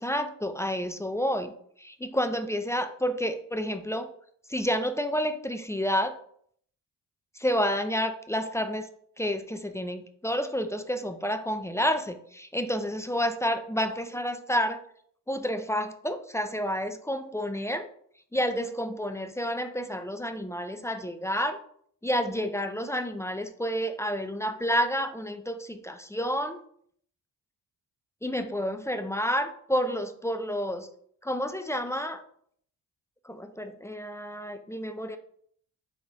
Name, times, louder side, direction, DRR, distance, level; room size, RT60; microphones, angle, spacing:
voice 1, 0.0-1.5 1.8-4.1 4.5-6.1 7.4-8.9 9.2-14.8 15.3-17.8 18.3-21.6 22.0-26.6 28.2-30.9 31.2-32.2 33.3-35.2, equal, 10° left, 8 dB, 0.3 m, -29 dB
3.9 x 3.5 x 3.5 m, 0.62 s
cardioid pair, 75°, 43 cm